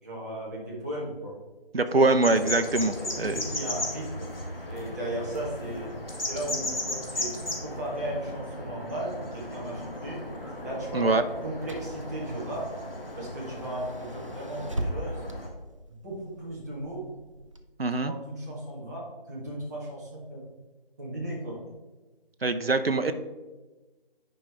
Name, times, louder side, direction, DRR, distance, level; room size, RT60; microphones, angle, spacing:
voice 1, 0.0-1.3 2.0-2.1 3.0-4.3 4.7-5.9 6.3-7.3 7.6-10.2 10.6-12.7 13.1-15.2 16.0-17.0 18.0-20.4 21.0-21.6, right 1 dB, 20° right, -6 dB, 1.5 m, -36 dB
voice 2, 1.7-3.4 10.9-11.2 17.8-18.1 22.4-23.1, right 2 dB, 80° right, 10 dB, 0.7 m, -23 dB
sound 1, 2.2-15.5, left 1 dB, 75° left, 1.9 m, -36 dB
Car / Engine, 9.3-17.6, right 1 dB, 35° right, 0.5 m, -41 dB
10.0 x 5.2 x 3.5 m, 1.2 s
figure-of-eight pair, 160°, 29 cm